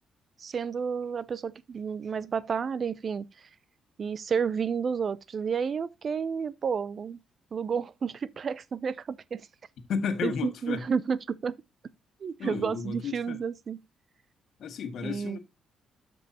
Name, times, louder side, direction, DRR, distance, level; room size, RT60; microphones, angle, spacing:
voice 1, 0.4-3.3 4.0-7.2 7.5-9.4 10.2-11.6 12.2-13.8 15.0-15.4, right 6 dB, 45° right, 0.4 m, -31 dB
voice 2, 9.9-10.8 12.4-13.4 14.6-15.4, left 6 dB, 65° left, 1.6 m, -33 dB
13.0 x 5.3 x 2.8 m
cardioid pair, 115°, 0 cm